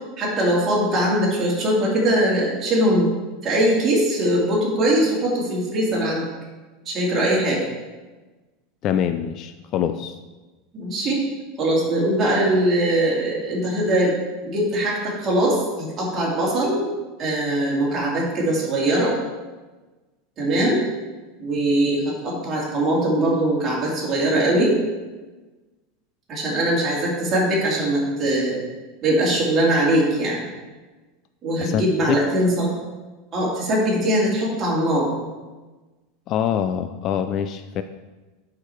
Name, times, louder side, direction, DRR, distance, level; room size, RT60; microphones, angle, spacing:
voice 1, 0.2-3.1 3.4-6.3 6.9-7.6 10.7-11.3 11.6-14.2 14.4-16.9 17.2-19.1 20.4-20.8 21.4-24.8 26.3-28.6 29.0-30.4 31.4-32.7 33.3-35.1, right 1 dB, 25° right, -4 dB, 2.5 m, -21 dB
voice 2, 8.8-10.2 31.6-32.2 36.3-37.8, left 9 dB, 35° left, 9 dB, 0.3 m, -24 dB
11.0 x 4.9 x 4.4 m, 1.2 s
supercardioid pair, 165°, 0 cm